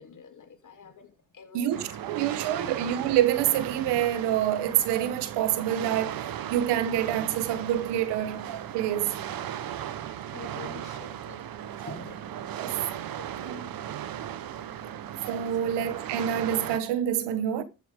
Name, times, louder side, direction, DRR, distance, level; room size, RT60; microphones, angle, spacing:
voice 1, 0.0-1.7 2.1-2.8 9.4-10.0 10.3-11.4 11.8-12.2 13.2-13.6 15.6-15.7, left 5 dB, 50° left, 3.2 m, -47 dB
voice 2, 1.5-8.5 8.7-9.2 12.5-12.8 13.4-13.7 15.3-17.6, right 11 dB, 80° right, 1.4 m, -27 dB
sound 1, 1.7-16.8, right 10 dB, 60° right, 1.2 m, -37 dB
14.0 x 8.3 x 3.7 m
supercardioid pair, 60°, 40 cm